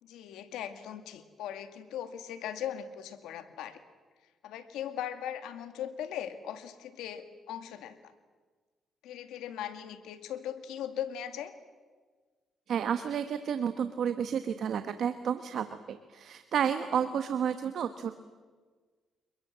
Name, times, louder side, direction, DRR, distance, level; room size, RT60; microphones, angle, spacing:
voice 1, 0.0-3.8 4.4-8.0 9.0-11.5, left 10 dB, 90° left, 9 dB, 2.1 m, -39 dB
voice 2, 12.7-18.1, right 8 dB, 65° right, 9 dB, 1.3 m, -31 dB
28.5 x 22.0 x 7.5 m, 1.4 s
cardioid pair, 90°, 0 cm